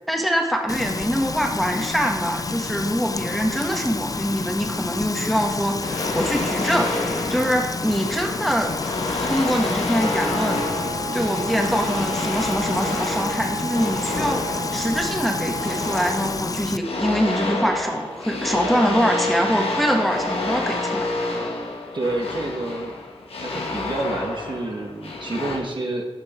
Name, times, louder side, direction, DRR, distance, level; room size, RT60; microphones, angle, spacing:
voice 1, 0.1-6.9 7.3-8.7 9.3-10.6 11.1-21.1, equal, ahead, 1 dB, 1.7 m, -24 dB
Frying (food), 0.7-16.8, left 4 dB, 40° left, 0.4 m, -30 dB
sound 1, 5.8-25.6, left 2 dB, 85° left, 1.5 m, -29 dB
Wind instrument woodwind instrument, 9.9-16.6, right 2 dB, 35° right, 1.5 m, -33 dB
voice 2, 21.9-23.0 23.3-26.1, right 2 dB, 55° right, 1 dB, 1.6 m, -28 dB
12.5 x 6.3 x 4.4 m, 1.1 s
wide cardioid pair, 60°, 10 cm